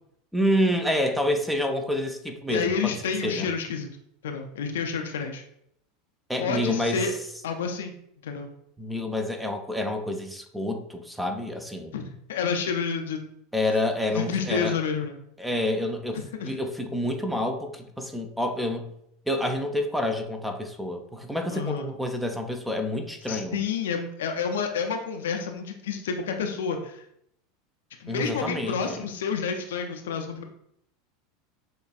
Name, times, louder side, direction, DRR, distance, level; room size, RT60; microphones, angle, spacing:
voice 1, 0.3-2.9 3.2-3.5 6.3-7.1 8.8-11.9 13.5-14.8 15.4-18.9 19.3-23.6 28.1-29.1, left 1 dB, 5° right, 5 dB, 0.5 m, -28 dB
voice 2, 2.5-3.9 4.2-5.4 6.4-7.1 7.4-7.9 8.2-8.5 11.9-13.2 14.1-15.2 16.1-16.5 21.5-21.9 23.3-27.0 28.0-30.4, left 6 dB, 65° left, 4 dB, 0.5 m, -29 dB
6.2 x 2.4 x 2.4 m, 0.72 s
figure-of-eight pair, 80°, 0 cm